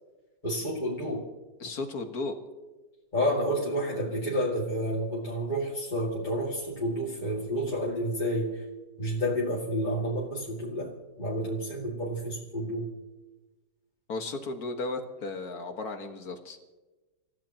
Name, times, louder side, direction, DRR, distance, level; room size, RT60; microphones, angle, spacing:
voice 1, 0.4-1.3 3.1-8.6 9.0-10.9 11.2-12.9, equal, 25° left, -6 dB, 2.3 m, -30 dB
voice 2, 1.6-2.4 14.1-16.6, left 3 dB, 55° left, 5 dB, 2.0 m, -35 dB
29.5 x 15.0 x 3.0 m, 1.2 s
omnidirectional pair, 2.1 m